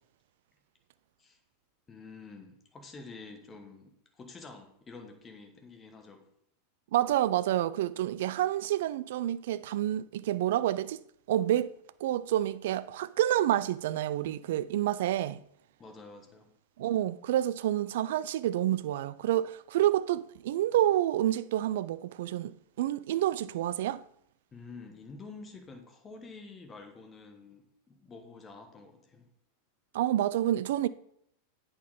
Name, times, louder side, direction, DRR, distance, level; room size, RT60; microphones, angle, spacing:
voice 1, 1.9-6.3 15.8-16.5 24.5-29.3, left 4 dB, 20° left, 1.2 m, -48 dB
voice 2, 6.9-11.0 11.3-11.7 12.0-15.4 16.8-24.0 29.9-30.9, right 13 dB, 55° right, 0.3 m, -28 dB
8.3 x 4.3 x 5.0 m
figure-of-eight pair, 90°, 0 cm